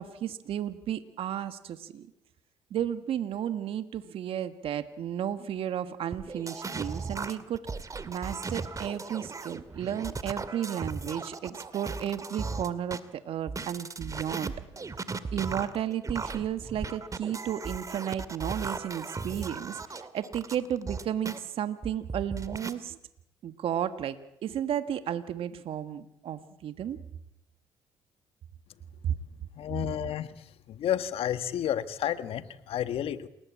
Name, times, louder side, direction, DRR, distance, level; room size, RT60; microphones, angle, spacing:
voice 1, 0.0-2.1 2.7-7.6 7.9-14.5 15.3-23.0 23.4-24.2 24.4-27.0 29.0-29.1, right 10 dB, 65° right, 10 dB, 1.6 m, -33 dB
sound 1, 6.1-13.0 13.5-21.4 21.8-22.7, right 4 dB, 35° right, 2.3 m, -37 dB
voice 2, 29.6-30.3 30.7-33.3, left 10 dB, 70° left, 11 dB, 1.6 m, -31 dB
29.0 x 19.5 x 8.6 m, 0.80 s
supercardioid pair, 55°, 10 cm